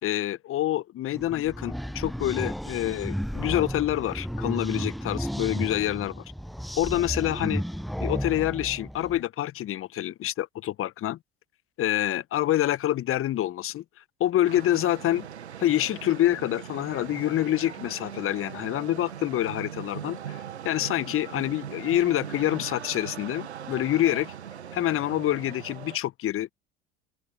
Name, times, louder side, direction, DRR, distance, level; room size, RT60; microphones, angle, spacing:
voice 1, 0.0-6.1 6.8-7.6 8.0-11.2 11.8-13.8 14.2-15.3 15.6-20.4 20.6-24.3 24.7-26.5, left 13 dB, 40° left, 1.4 m, -27 dB
sound 1, 1.1-9.2, equal, ahead, 0.7 m, -33 dB
sound 2, 14.4-26.0, right 9 dB, 80° right, 2.4 m, -40 dB
open air
figure-of-eight pair, 65°, 33 cm